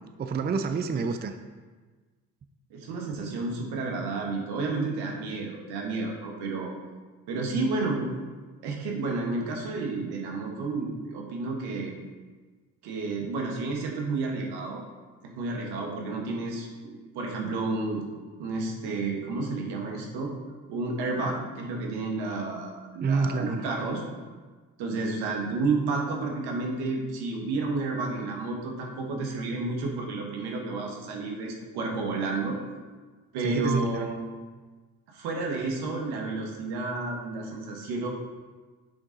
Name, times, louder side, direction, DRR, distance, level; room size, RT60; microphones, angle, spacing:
voice 1, 0.2-1.3 23.0-23.6 33.4-34.1, right 4 dB, 25° right, 8 dB, 0.4 m, -27 dB
voice 2, 2.7-6.7 7.3-8.1 8.6-12.0 12.8-14.8 15.2-18.0 18.4-20.3 20.7-24.0 24.8-32.6 33.3-34.2 35.1-38.1, right 3 dB, 80° right, 0 dB, 1.3 m, -31 dB
7.7 x 3.7 x 3.8 m, 1.4 s
supercardioid pair, 60°, 38 cm